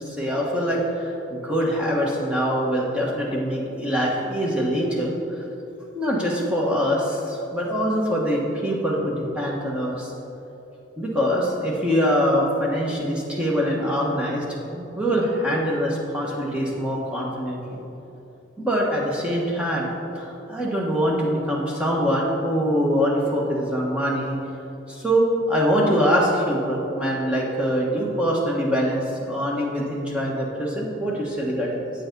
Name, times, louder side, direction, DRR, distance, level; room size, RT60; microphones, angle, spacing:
voice 1, 0.0-5.4 5.9-10.1 11.0-14.4 14.7-17.8 18.6-19.9 20.1-24.4 24.9-31.9, equal, 5° right, -4 dB, 1.2 m, -24 dB
7.8 x 6.9 x 5.3 m, 2.9 s
head